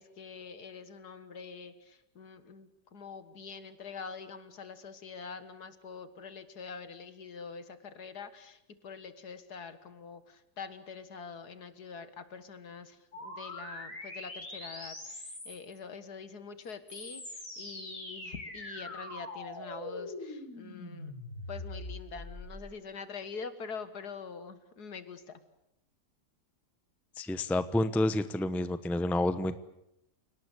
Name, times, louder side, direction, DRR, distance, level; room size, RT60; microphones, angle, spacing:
voice 1, 0.0-21.1 21.5-25.4, left 5 dB, 65° left, 12 dB, 2.2 m, -45 dB
sound 1, 13.1-15.8 16.6-22.6, left 1 dB, 50° left, 6.0 m, -43 dB
voice 2, 27.2-29.6, left 1 dB, ahead, 12 dB, 0.7 m, -29 dB
29.0 x 18.5 x 8.3 m, 0.84 s
omnidirectional pair, 1.8 m